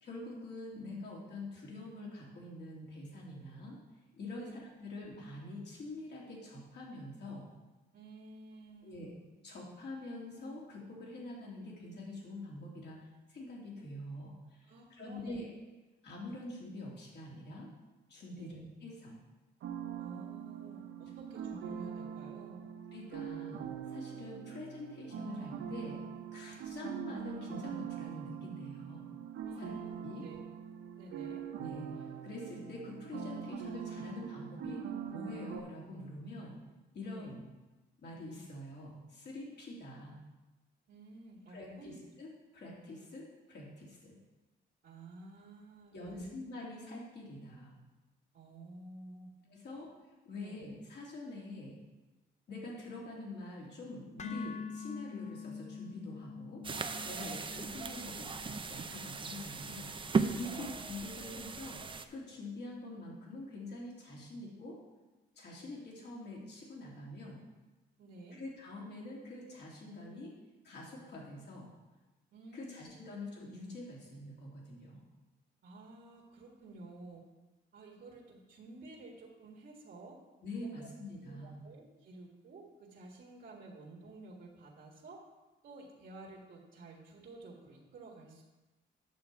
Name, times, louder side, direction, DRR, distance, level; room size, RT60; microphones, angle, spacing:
voice 1, 0.0-3.8 4.1-7.5 8.8-9.1 9.4-15.5 16.0-17.7 18.1-19.2 22.9-26.0 26.3-29.1 29.6-29.7 30.0-30.3 31.6-36.6 36.9-37.4 38.0-40.2 41.5-44.1 45.9-47.8 49.5-49.9 50.2-51.8 52.5-56.6 57.0-58.3 58.7-60.0 60.3-64.8 65.4-67.4 68.3-70.4 70.6-71.7 72.5-75.1 80.4-81.6, left 2 dB, 60° left, -3 dB, 3.0 m, -45 dB
voice 2, 7.9-9.2 14.7-15.4 18.3-18.6 20.0-22.7 29.5-30.0 30.2-30.4 31.0-31.4 37.1-37.3 40.9-41.9 44.8-46.3 48.3-49.3 49.6-49.9 50.4-50.6 57.2-57.4 60.4-60.7 68.0-68.4 72.3-72.9 75.6-77.2 77.7-80.2 80.6-80.9 81.3-85.2 85.6-88.4, right 2 dB, 55° right, -1 dB, 1.8 m, -52 dB
sound 1, 19.6-35.6, right 8 dB, 75° right, 0.8 m, -43 dB
sound 2, 54.2-62.3, left 6 dB, 35° left, 0.7 m, -48 dB
sound 3, 56.6-62.1, right 4 dB, 25° right, 0.6 m, -37 dB
9.2 x 6.8 x 4.7 m, 1.1 s
cardioid pair, 90°, 20 cm